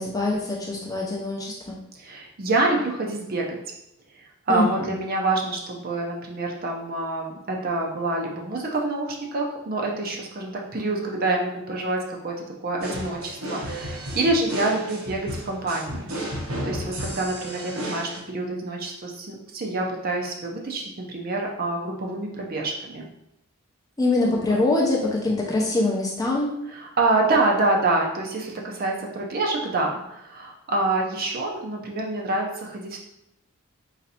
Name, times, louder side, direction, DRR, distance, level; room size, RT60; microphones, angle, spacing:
voice 1, 0.0-1.8 4.5-4.7 24.0-26.5, left 2 dB, 15° left, -2 dB, 0.5 m, -24 dB
voice 2, 1.9-3.6 4.5-12.3 12.6-16.0 16.6-23.1 24.3-24.6 26.7-33.0, right 2 dB, 40° right, 0 dB, 0.5 m, -26 dB
sound 1, 12.8-18.2, equal, 65° right, 0.8 m, -33 dB
4.0 x 3.1 x 2.7 m, 0.81 s
head